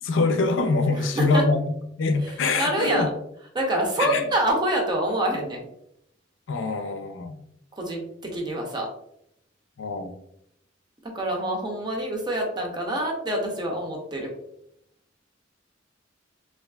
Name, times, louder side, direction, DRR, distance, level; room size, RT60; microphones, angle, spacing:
voice 1, 0.0-3.1 4.0-4.2 6.5-7.4 9.8-10.1, left 3 dB, 80° left, 6 dB, 0.4 m, -24 dB
voice 2, 1.0-1.4 2.2-3.1 3.5-5.6 7.8-8.9 11.0-14.3, right 1 dB, 25° right, 0 dB, 0.6 m, -26 dB
3.3 x 2.4 x 2.3 m, 0.77 s
head